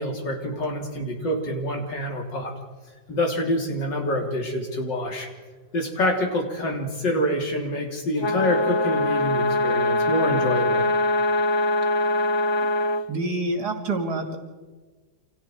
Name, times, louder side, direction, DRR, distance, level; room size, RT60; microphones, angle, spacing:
voice 1, 0.0-2.5 3.1-5.3 5.7-10.8, left 1 dB, 65° left, 1 dB, 4.0 m, -26 dB
sound 1, 8.2-13.0, left 2 dB, 35° left, 0.4 m, -22 dB
voice 2, 13.1-14.4, right 2 dB, 55° right, 4 dB, 3.1 m, -27 dB
28.5 x 27.5 x 4.6 m, 1.3 s
omnidirectional pair, 2.1 m